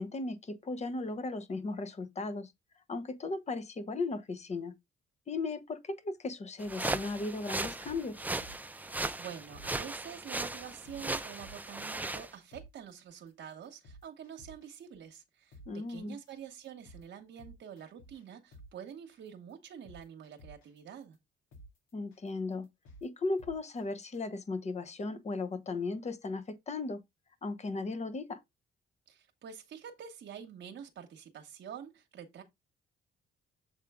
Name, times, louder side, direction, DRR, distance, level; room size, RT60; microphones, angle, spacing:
voice 1, 0.0-2.5 2.9-4.7 5.3-8.2 15.7-16.2 21.9-22.7 23.0-27.0 27.4-28.4, left 3 dB, 35° left, 0.9 m, -36 dB
sound 1, 6.6-12.3, right 2 dB, 10° right, 0.5 m, -37 dB
sound 2, 7.8-8.8 9.1-9.2 9.5-9.7 10.1-10.3 10.6-11.0 11.4-11.8 12.1-12.2 12.5-12.7 13.1-13.3 13.6-14.8 15.1-15.2 15.5-15.7 16.1-16.3 16.6-17.0 17.4-18.2 18.5-18.7 19.1-19.3 19.6-20.8 21.1-21.2 21.5-21.7 22.1-22.3 22.6-23.0 23.4-23.8 24.1-24.2, right 1 dB, 80° left, 2.0 m, -53 dB
voice 2, 8.8-21.2 29.1-32.4, right 8 dB, 65° right, 1.0 m, -47 dB
7.3 x 3.7 x 3.5 m
cardioid pair, 90°, 20 cm